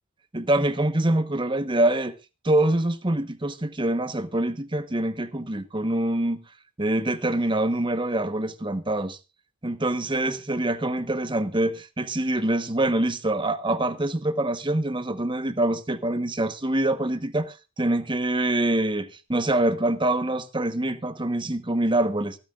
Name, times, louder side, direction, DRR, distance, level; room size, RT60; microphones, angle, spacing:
voice 1, 0.3-2.1 2.4-6.4 6.8-9.2 9.6-22.4, right 1 dB, 20° right, 1.1 m, -25 dB
24.5 x 8.8 x 2.4 m
head